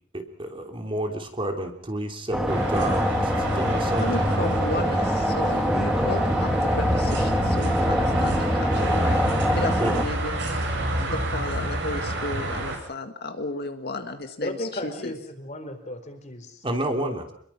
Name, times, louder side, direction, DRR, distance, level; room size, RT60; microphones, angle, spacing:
voice 1, 0.1-4.1 9.8-9.9 16.6-17.3, right 1 dB, 25° right, 4 dB, 3.2 m, -30 dB
sound 1, 2.3-10.1, equal, 5° right, 2.1 m, -24 dB
sound 2, 2.5-12.8, right 1 dB, 65° right, 7.7 m, -29 dB
voice 2, 4.0-9.2 9.6-15.1, left 2 dB, 55° left, 6 dB, 1.9 m, -33 dB
sound 3, 6.0-11.7, left 2 dB, 80° left, 1.1 m, -36 dB
voice 3, 14.4-16.6 17.0-17.2, left 1 dB, 40° left, 7 dB, 4.1 m, -35 dB
28.0 x 22.0 x 5.9 m, 0.64 s
head